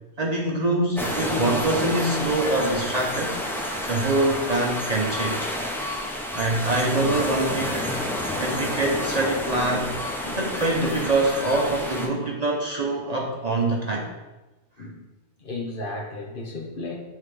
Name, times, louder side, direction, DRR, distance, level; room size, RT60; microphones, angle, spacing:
voice 1, 0.2-3.4 3.9-5.5 6.3-8.0 8.4-10.0 10.3-14.1, right 2 dB, 40° right, 0 dB, 0.7 m, -24 dB
sound 1, 0.9-12.1, left 1 dB, 5° left, 0.5 m, -29 dB
voice 2, 10.2-10.6 14.8-15.0 15.4-17.0, left 2 dB, 50° left, 0 dB, 1.1 m, -34 dB
9.4 x 3.7 x 3.3 m, 1.1 s
omnidirectional pair, 1.2 m